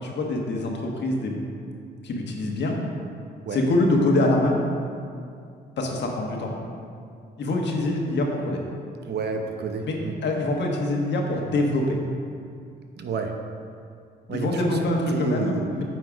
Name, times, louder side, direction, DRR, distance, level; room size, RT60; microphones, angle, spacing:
voice 1, 0.0-1.4 2.0-2.8 3.5-4.6 5.8-6.5 7.4-8.6 9.9-10.0 10.2-12.0 14.3-15.8, left 2 dB, 60° left, 0 dB, 1.3 m, -24 dB
voice 2, 9.0-10.1 13.0-13.4 14.3-14.8 15.1-15.7, right 5 dB, 55° right, 4 dB, 0.8 m, -29 dB
8.7 x 4.3 x 5.1 m, 2.3 s
cardioid pair, 90°, 20 cm